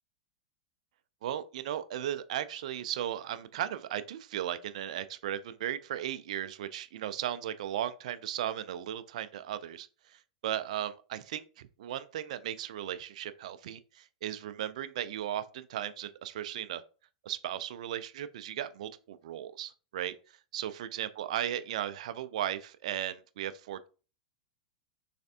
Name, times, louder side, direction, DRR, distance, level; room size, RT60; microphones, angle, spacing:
voice 1, 1.2-16.8 17.2-23.9, right 11 dB, 70° right, 0.4 m, -36 dB
3.3 x 3.2 x 2.7 m
hypercardioid pair, 100°, 4 cm